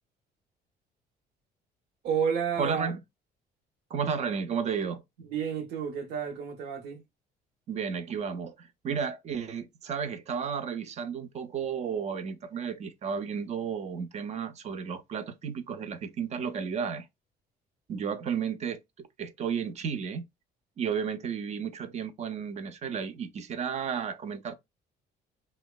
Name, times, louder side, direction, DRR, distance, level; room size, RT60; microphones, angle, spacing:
voice 1, 2.0-2.9 5.2-7.0, right 7 dB, 80° right, 0.8 m, -30 dB
voice 2, 2.6-3.0 3.9-5.0 7.7-17.1 17.9-20.2 20.8-24.5, right 6 dB, 40° right, 0.5 m, -33 dB
2.8 x 2.2 x 2.2 m
cardioid pair, 110°, 17 cm